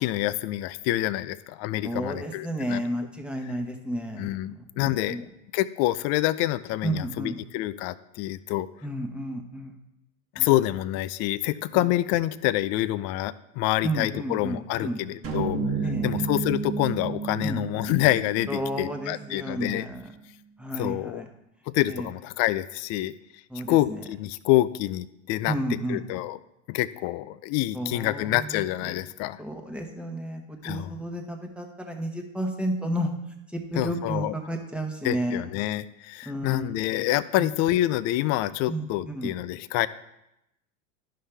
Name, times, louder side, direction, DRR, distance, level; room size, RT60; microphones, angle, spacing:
voice 1, 0.0-2.8 4.2-5.2 5.5-8.7 10.4-15.6 16.0-19.9 20.8-21.2 21.7-23.1 23.7-26.4 26.7-29.4 30.6-30.9 33.8-34.3 35.0-39.9, left 15 dB, 40° left, 16 dB, 0.4 m, -27 dB
voice 2, 1.8-5.2 6.8-7.4 8.8-9.8 10.4-10.5 11.7-11.9 13.8-15.0 15.8-16.3 17.4-17.6 18.5-20.1 20.6-21.3 21.9-22.1 23.5-24.0 25.4-26.0 27.7-29.0 29.4-33.1 33.5-35.4 36.2-36.7 37.4-37.5 38.7-39.3, right 1 dB, 5° right, 3 dB, 1.1 m, -32 dB
sound 1, 15.2-19.6, right 4 dB, 35° right, 1.4 m, -31 dB
11.5 x 5.6 x 3.3 m, 0.85 s
hypercardioid pair, 95°, 39 cm